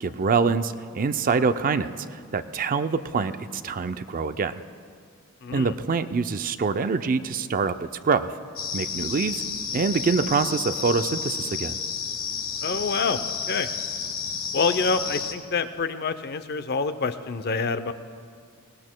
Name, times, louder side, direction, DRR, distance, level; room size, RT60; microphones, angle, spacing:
voice 1, 0.0-4.6 5.5-8.3 8.7-9.4 9.7-11.8, right 5 dB, 40° right, 10 dB, 0.4 m, -25 dB
voice 2, 5.4-5.8 12.6-13.7 14.5-17.9, left 4 dB, 45° left, 11 dB, 0.6 m, -27 dB
sound 1, 8.6-15.3, left 6 dB, 65° left, 1.3 m, -31 dB
23.0 x 18.5 x 2.2 m, 2.1 s
head